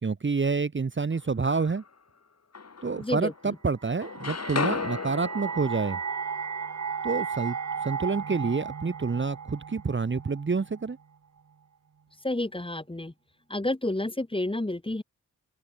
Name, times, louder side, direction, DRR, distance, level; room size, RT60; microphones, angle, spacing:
voice 1, 0.0-1.8 2.8-6.0 7.0-7.6 7.8-11.0, right 4 dB, 35° right, 1.2 m, -28 dB
sound 1, 1.1-2.0 2.5-3.6 3.8-7.8, left 5 dB, 45° left, 2.4 m, -36 dB
voice 2, 3.0-3.6 12.2-13.1 13.5-15.0, left 1 dB, 15° left, 2.0 m, -30 dB
sound 2, 3.8-10.9, right 6 dB, 50° right, 1.7 m, -35 dB
open air
supercardioid pair, 40°, 35 cm